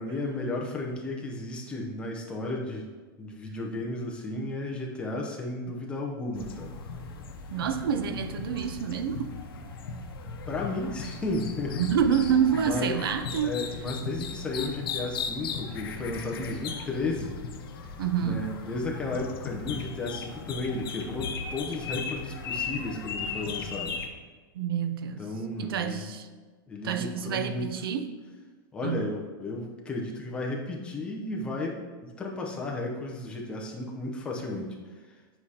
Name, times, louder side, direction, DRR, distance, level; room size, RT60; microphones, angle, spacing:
voice 1, 0.0-2.9 3.2-6.7 10.5-11.8 12.6-13.0 13.4-17.4 18.2-24.0 25.2-26.1 26.7-27.7 28.7-34.8, left 2 dB, 10° left, -1 dB, 0.6 m, -33 dB
sound 1, 6.3-24.1, left 5 dB, 90° left, 0.8 m, -37 dB
voice 2, 7.5-9.4 11.8-13.5 18.0-18.5 24.5-25.3 25.6-26.3 26.8-28.1 28.8-29.2, right 8 dB, 90° right, 8 dB, 0.6 m, -28 dB
7.5 x 4.8 x 2.8 m, 1.4 s
supercardioid pair, 160°, 12 cm